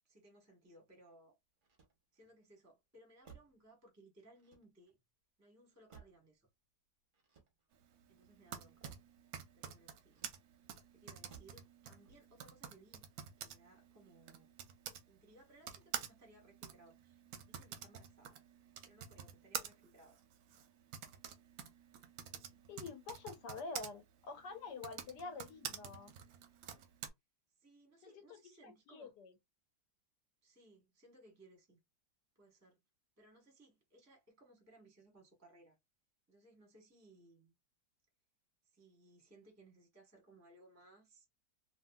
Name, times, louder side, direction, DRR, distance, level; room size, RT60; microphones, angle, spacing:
voice 1, 0.0-1.4 2.1-5.0 5.4-6.5 8.1-8.9 9.5-10.2 10.9-13.1 13.4-14.5 15.1-18.4 18.8-20.2 27.6-29.2 30.4-31.8 32.4-32.8 33.2-35.8 36.3-37.5 38.6-41.3, right 1 dB, 10° right, 0.8 m, -63 dB
Motor vehicle (road), 1.6-2.4 3.2-3.7 4.3-5.0 5.9-6.4 7.1-7.9 8.8-9.2 10.1-10.7 11.3-11.7 12.0-12.5, right 6 dB, 45° right, 0.7 m, -60 dB
Typing, 8.2-15.0 15.6-23.9 24.7-27.1, right 8 dB, 70° right, 0.9 m, -48 dB
voice 2, 22.7-26.1 28.0-28.1 28.4-29.3, left 4 dB, 70° left, 1.3 m, -47 dB
2.9 x 2.8 x 2.2 m
omnidirectional pair, 2.0 m